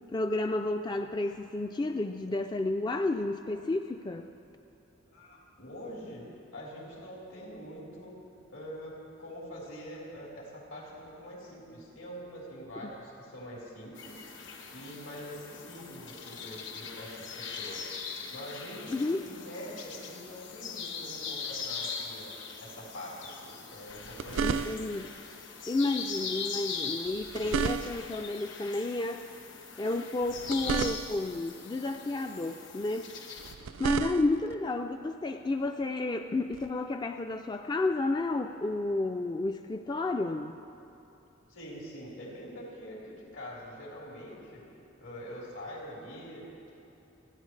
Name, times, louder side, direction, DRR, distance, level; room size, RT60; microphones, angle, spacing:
voice 1, 0.1-4.3 12.8-12.9 18.9-19.2 24.4-25.1 25.7-29.3 29.8-33.1 33.8-40.6, left 2 dB, 20° left, 6 dB, 0.3 m, -31 dB
voice 2, 5.1-8.1 8.5-14.2 14.7-17.9 18.3-22.3 22.6-24.7 41.5-44.6 45.0-46.7, equal, 80° left, -5 dB, 4.0 m, -44 dB
sound 1, 14.0-33.5, left 5 dB, 65° left, 1.2 m, -41 dB
sound 2, 23.9-25.1 27.1-28.2 30.2-31.4 33.4-34.5 36.5-36.7, right 6 dB, 80° right, 0.4 m, -33 dB
29.0 x 10.5 x 3.2 m, 2.9 s
head